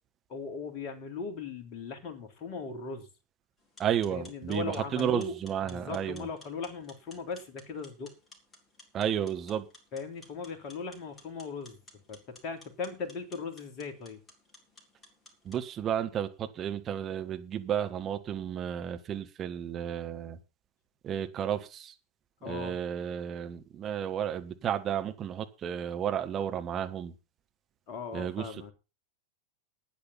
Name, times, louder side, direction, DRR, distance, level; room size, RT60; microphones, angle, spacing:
voice 1, 0.3-3.1 4.1-8.1 9.9-11.8 12.1-14.2 22.4-22.8 27.9-28.7, left 4 dB, 35° left, 3.3 m, -38 dB
sound 1, 3.6-15.6, left 2 dB, 15° left, 4.2 m, -56 dB
voice 2, 3.8-6.3 8.9-9.6 15.4-20.4 21.0-21.9 22.4-27.1 28.1-28.5, right 9 dB, 25° right, 1.6 m, -32 dB
12.0 x 9.6 x 5.7 m
figure-of-eight pair, 90°, 0 cm